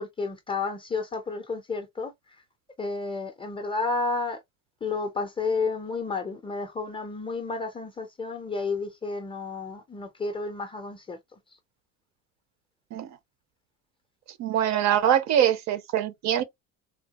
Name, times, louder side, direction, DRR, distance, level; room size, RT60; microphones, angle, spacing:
voice 1, 0.0-2.1 2.8-4.4 4.8-11.2, left 4 dB, 15° left, 0.4 m, -31 dB
voice 2, 14.4-16.4, right 10 dB, 55° right, 0.6 m, -23 dB
3.5 x 2.2 x 2.8 m
cardioid pair, 165°, 34 cm